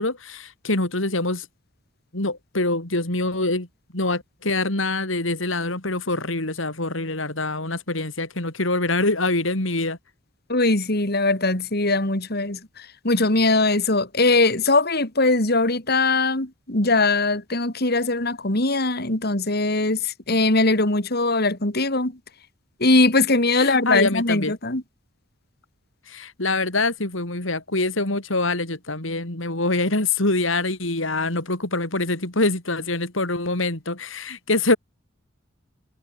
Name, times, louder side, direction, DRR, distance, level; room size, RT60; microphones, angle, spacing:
voice 1, 0.0-1.5 2.1-3.7 3.9-10.0 23.6-24.5 26.1-34.8, left 2 dB, 75° left, 4.4 m, -25 dB
voice 2, 10.5-22.2 22.8-24.8, left 2 dB, 55° left, 3.5 m, -21 dB
head